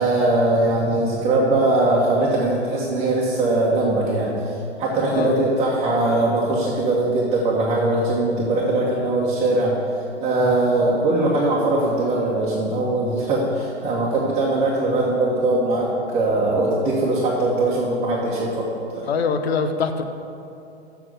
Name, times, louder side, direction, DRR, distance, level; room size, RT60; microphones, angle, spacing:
voice 1, 0.0-9.7 10.2-18.7 18.9-19.1, right 2 dB, 20° right, -5 dB, 1.4 m, -21 dB
voice 2, 5.1-5.4 19.1-20.0, left 5 dB, 60° left, 7 dB, 1.0 m, -23 dB
7.3 x 6.9 x 7.9 m, 2.7 s
hypercardioid pair, 120°, 35 cm